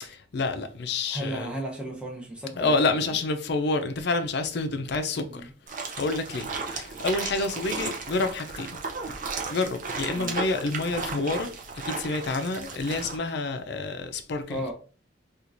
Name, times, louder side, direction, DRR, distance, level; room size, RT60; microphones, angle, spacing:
voice 1, 0.3-1.5 2.6-5.5 5.9-8.8 9.5-11.5 11.8-14.7, left 3 dB, 60° left, 0.5 m, -28 dB
voice 2, 1.1-3.2 5.2-5.5 10.1-10.4 14.5-14.7, right 1 dB, 5° right, 0.8 m, -35 dB
sound 1, 5.7-13.2, right 4 dB, 45° right, 0.6 m, -35 dB
4.4 x 2.4 x 2.6 m
head